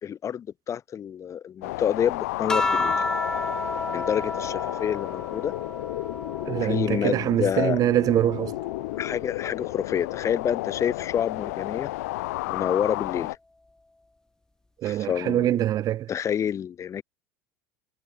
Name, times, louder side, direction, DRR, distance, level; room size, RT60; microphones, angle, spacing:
voice 1, 0.0-3.1 3.9-5.5 6.4-7.8 9.0-11.9 12.5-13.4 14.8-15.6 16.1-17.0, left 9 dB, 35° left, 1.4 m, -28 dB
sound 1, 1.6-13.4, left 20 dB, 85° left, 0.6 m, -32 dB
sound 2, 2.5-7.3 7.7-9.5 10.7-11.2, left 2 dB, 5° left, 0.5 m, -32 dB
voice 2, 6.5-8.5 14.8-16.1, right 12 dB, 45° right, 0.7 m, -24 dB
supercardioid pair, 100°, 8 cm